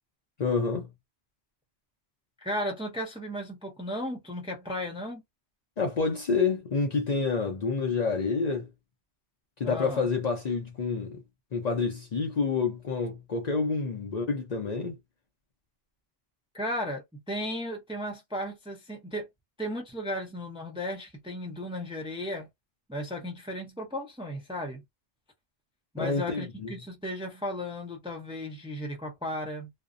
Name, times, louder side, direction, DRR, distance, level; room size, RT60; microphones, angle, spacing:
voice 1, 0.4-0.9 5.8-8.7 9.6-11.2 11.5-14.9 26.0-26.7, left 4 dB, 50° left, 0.5 m, -28 dB
voice 2, 2.4-5.2 9.6-10.0 16.5-19.3 19.6-22.5 22.9-24.8 25.9-29.7, equal, 10° right, 0.4 m, -35 dB
2.6 x 2.0 x 2.4 m
omnidirectional pair, 1.1 m